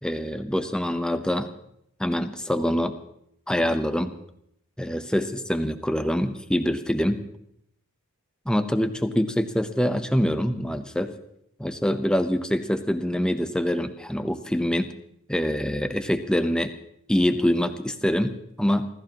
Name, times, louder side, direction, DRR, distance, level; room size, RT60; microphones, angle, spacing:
voice 1, 0.0-1.5 2.0-2.9 3.5-4.1 4.8-7.2 8.5-11.1 11.6-14.9 15.3-16.7 17.1-18.9, equal, 5° left, 8 dB, 0.8 m, -25 dB
28.5 x 14.0 x 3.0 m, 0.75 s
head